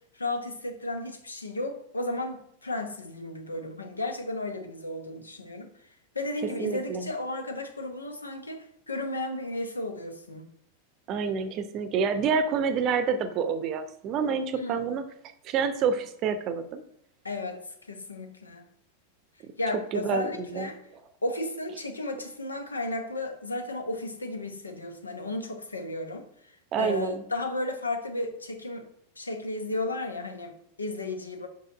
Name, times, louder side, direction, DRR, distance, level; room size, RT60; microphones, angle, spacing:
voice 1, 0.1-5.9 6.1-10.5 14.5-14.8 17.2-18.6 19.6-20.8 21.2-28.9 29.2-31.5, left 2 dB, 80° left, 0.8 m, -34 dB
voice 2, 6.6-7.1 11.1-15.0 15.4-16.8 19.4-19.5 19.9-20.3 20.5-20.7 26.7-27.2, right 6 dB, 35° right, 0.7 m, -28 dB
5.6 x 5.1 x 4.9 m
figure-of-eight pair, 90°, 0 cm